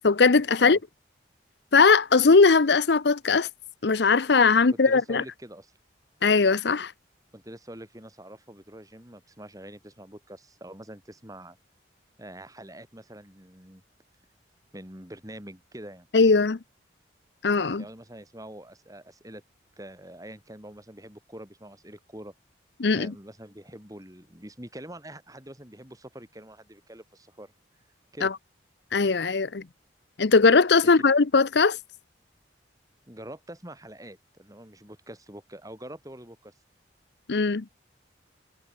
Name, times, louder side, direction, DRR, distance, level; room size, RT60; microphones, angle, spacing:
voice 1, 0.0-0.8 1.7-3.5 3.8-5.2 6.2-6.9 16.1-16.6 17.4-17.8 22.8-23.1 28.2-28.3 28.9-29.6 30.2-31.8 37.3-37.6, left 4 dB, 65° left, 0.7 m, -19 dB
voice 2, 4.6-5.7 7.3-11.6 12.2-13.8 14.7-16.1 17.8-19.4 19.8-22.3 22.9-27.5 28.1-28.3 30.8-30.9 33.1-36.5, right 1 dB, 20° right, 7.0 m, -45 dB
head